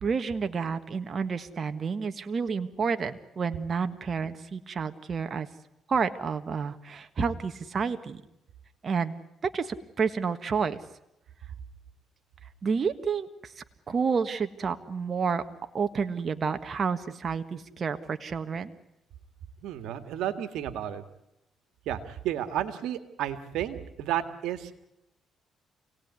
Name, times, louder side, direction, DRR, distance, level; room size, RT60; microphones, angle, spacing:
voice 1, 0.0-5.5 5.9-8.2 8.8-9.2 9.5-10.8 12.6-15.4 15.7-18.7, right 5 dB, 45° right, 8 dB, 1.6 m, -30 dB
voice 2, 19.6-21.0 21.9-24.8, right 11 dB, 85° right, 11 dB, 2.0 m, -32 dB
28.0 x 18.5 x 9.7 m, 0.85 s
cardioid pair, 90°, 0 cm